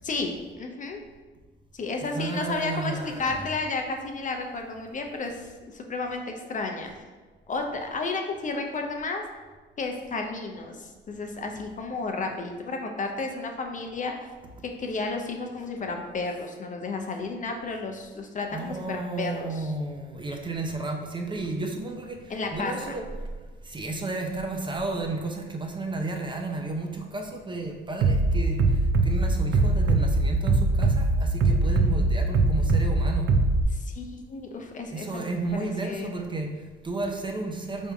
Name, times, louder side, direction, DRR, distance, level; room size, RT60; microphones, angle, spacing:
voice 1, 0.0-1.0 1.7-6.2 6.5-6.9 7.5-9.2 9.8-14.1 14.6-19.7 22.3-22.9 33.7-36.1, left 3 dB, 40° left, 3 dB, 0.5 m, -32 dB
voice 2, 2.1-3.5 18.5-23.1 23.6-33.3 34.9-37.9, right 3 dB, 25° right, 2 dB, 0.6 m, -33 dB
Bass drum, 28.0-33.6, right 3 dB, 70° right, 0.4 m, -22 dB
3.5 x 2.6 x 4.6 m, 1.3 s
cardioid pair, 90°, 20 cm